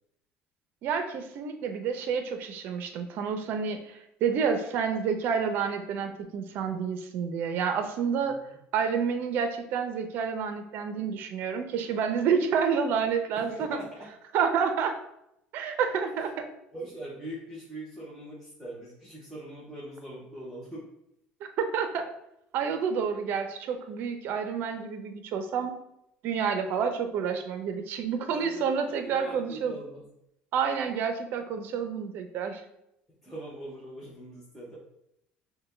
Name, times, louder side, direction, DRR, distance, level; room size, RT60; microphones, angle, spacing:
voice 1, 0.8-8.4 8.7-13.8 14.3-15.0 15.5-16.5 21.4-22.1 22.5-25.8 26.2-29.8 30.5-32.6, right 6 dB, 55° right, 7 dB, 0.6 m, -29 dB
voice 2, 13.4-14.1 16.2-16.3 16.7-20.9 28.3-30.0 33.2-34.8, right 1 dB, ahead, -7 dB, 0.8 m, -41 dB
6.4 x 2.2 x 3.2 m, 0.81 s
cardioid pair, 140°, 4 cm